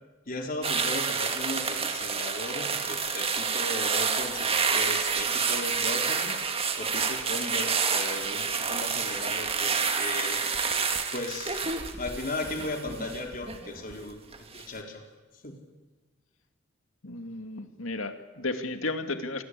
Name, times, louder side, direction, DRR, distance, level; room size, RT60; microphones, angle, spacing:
voice 1, 0.3-6.4 6.8-10.4 11.1-11.7 12.0-15.0 15.4-15.5, left 2 dB, 45° left, 2 dB, 4.4 m, -36 dB
sound 1, 0.6-14.0 14.3-14.6, right 5 dB, 30° right, 2.0 m, -29 dB
voice 2, 17.0-19.4, left 2 dB, 85° left, 7 dB, 2.3 m, -33 dB
28.5 x 22.0 x 8.4 m, 1.2 s
head